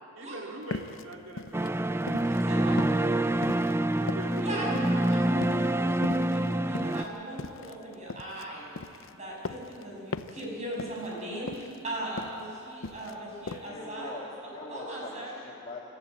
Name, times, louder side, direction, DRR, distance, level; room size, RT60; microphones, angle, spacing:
voice 1, 0.1-2.4 4.0-6.3, right 1 dB, 70° right, 1 dB, 2.5 m, -43 dB
sound 1, 0.7-2.5 2.8-5.1 5.4-5.8 6.0-8.4 8.8-9.8 10.1-10.5 10.7-11.2 11.5-12.4 12.7-13.2 13.5-13.7, left 3 dB, 70° left, 0.6 m, -39 dB
sound 2, 1.5-7.0, right 1 dB, 10° right, 0.4 m, -26 dB
voice 2, 2.3-2.8 4.4-8.7 9.1-14.1 14.7-15.3, right 1 dB, 35° right, -3 dB, 6.4 m, -38 dB
voice 3, 13.6-15.9, left 2 dB, 30° left, -4 dB, 2.3 m, -42 dB
25.5 x 13.5 x 7.9 m, 2.8 s
head